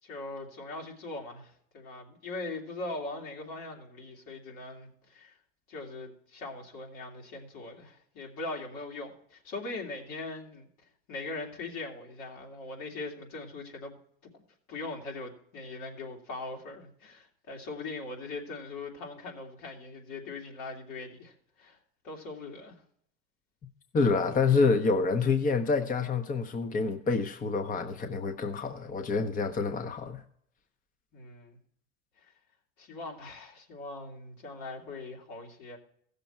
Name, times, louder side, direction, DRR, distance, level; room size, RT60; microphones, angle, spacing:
voice 1, 0.0-5.3 5.7-10.7 11.1-14.0 14.7-21.3 21.6-21.8 22.0-22.7 31.1-31.6 32.8-35.8, left 2 dB, 70° left, 3.0 m, -41 dB
voice 2, 23.9-30.2, left 4 dB, 25° left, 0.9 m, -27 dB
15.5 x 6.8 x 4.4 m
supercardioid pair, 100°, 30 cm